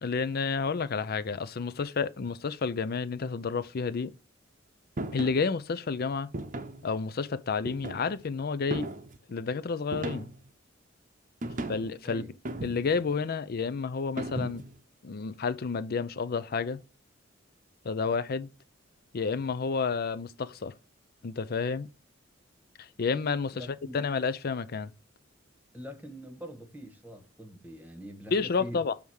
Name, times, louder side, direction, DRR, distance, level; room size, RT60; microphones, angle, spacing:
voice 1, 0.0-4.1 5.1-6.3 6.8-8.9 9.3-10.3 11.7-12.2 12.6-14.6 15.0-16.8 17.8-18.5 19.1-20.7 21.2-21.9 22.8-24.9 28.3-28.9, left 5 dB, 50° left, 0.5 m, -30 dB
sound 1, 5.0-5.4 6.3-6.8 7.7-8.2 8.7-9.2 9.9-10.5 11.4-11.9 12.4-13.1 14.2-14.8, right 2 dB, 40° right, 0.7 m, -36 dB
voice 2, 23.5-24.0 25.7-28.8, equal, 10° right, 1.2 m, -44 dB
7.1 x 3.5 x 6.3 m
head